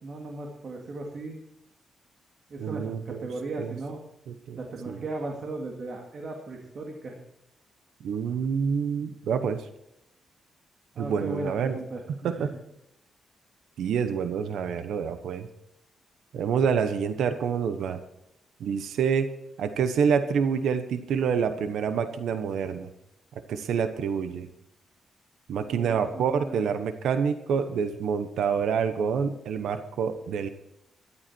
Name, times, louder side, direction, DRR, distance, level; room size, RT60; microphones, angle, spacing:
voice 1, 0.0-1.4 2.5-4.0 4.6-7.2 10.9-12.5 25.6-26.6, right 2 dB, 55° right, 1 dB, 2.4 m, -36 dB
voice 2, 2.6-3.3 3.6-3.7 4.3-4.6 4.9-5.0 8.0-9.6 11.0-11.8 12.2-12.5 13.8-15.5 16.3-18.0 18.6-19.3 19.6-22.9 23.5-24.5 25.5-30.5, right 6 dB, 85° right, 9 dB, 1.1 m, -27 dB
14.0 x 12.0 x 4.5 m, 0.81 s
cardioid pair, 105°, 0 cm